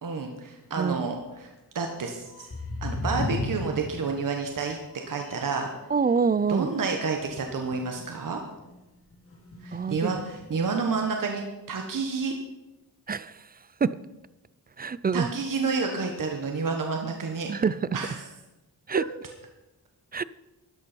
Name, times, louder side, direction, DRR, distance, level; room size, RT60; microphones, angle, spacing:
voice 1, 0.0-2.5 2.8-4.8 5.1-5.7 6.5-8.4 9.6-12.3 15.1-17.5 17.9-18.2, right 4 dB, 55° right, 3 dB, 1.5 m, -30 dB
voice 2, 0.8-1.1 5.9-6.7 9.7-10.1 13.1-13.3 13.8-14.0 14.8-15.3 17.5-17.8 18.9-19.0 20.1-20.2, right 5 dB, 25° right, 18 dB, 0.3 m, -25 dB
sound 1, 2.3-5.6 6.0-8.3 8.6-8.8 9.1-10.8, left 2 dB, 35° left, 2.9 m, -36 dB
13.0 x 11.0 x 4.5 m, 1.0 s
cardioid pair, 95°, 39 cm